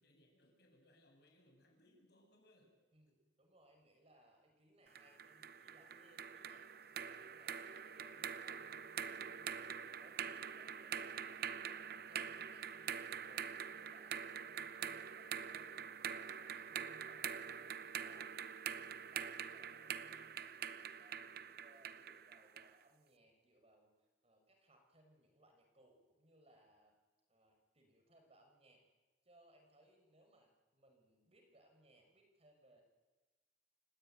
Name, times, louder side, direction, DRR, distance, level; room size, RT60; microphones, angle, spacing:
voice 1, 0.0-2.8 3.1-3.2 10.8-10.9, left 1 dB, 60° left, 2 dB, 7.6 m, -69 dB
voice 2, 2.9-18.3 18.7-26.9 27.3-28.8 29.2-32.8, right 1 dB, 35° right, 3 dB, 6.2 m, -68 dB
sound 1, 5.0-22.8, right 7 dB, 55° right, 0.9 m, -45 dB
29.5 x 17.0 x 9.3 m, 1.2 s
head